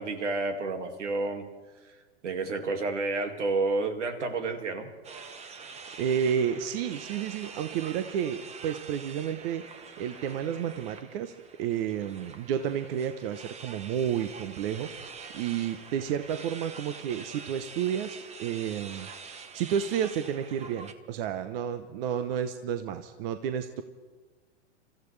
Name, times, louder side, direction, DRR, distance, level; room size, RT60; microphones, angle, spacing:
voice 1, 0.0-1.5 2.2-4.9, right 3 dB, 80° right, 5 dB, 2.3 m, -30 dB
sound 1, 5.0-20.9, right 5 dB, 20° right, 1.0 m, -45 dB
voice 2, 6.0-9.6 10.0-19.1 19.5-23.8, right 8 dB, 50° right, 9 dB, 1.0 m, -31 dB
29.5 x 14.5 x 3.3 m, 1.3 s
hypercardioid pair, 115°, 35 cm